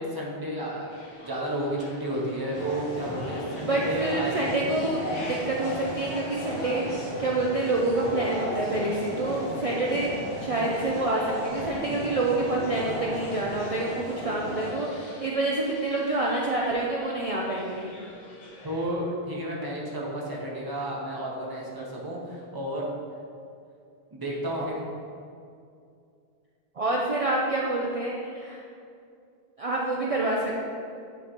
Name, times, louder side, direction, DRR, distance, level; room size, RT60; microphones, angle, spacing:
voice 1, 0.0-4.5 11.9-12.0 18.6-22.8 24.1-24.8, right 1 dB, 25° right, -3 dB, 0.9 m, -32 dB
sound 1, 0.9-19.0, left 1 dB, 50° left, 0.9 m, -48 dB
sound 2, 2.5-14.7, left 1 dB, 80° left, 1.9 m, -35 dB
voice 2, 3.6-10.1 10.4-17.9 24.6-24.7 26.8-28.6 29.6-30.5, right 2 dB, 45° right, -3 dB, 0.5 m, -27 dB
8.9 x 3.6 x 3.0 m, 2.4 s
omnidirectional pair, 1.0 m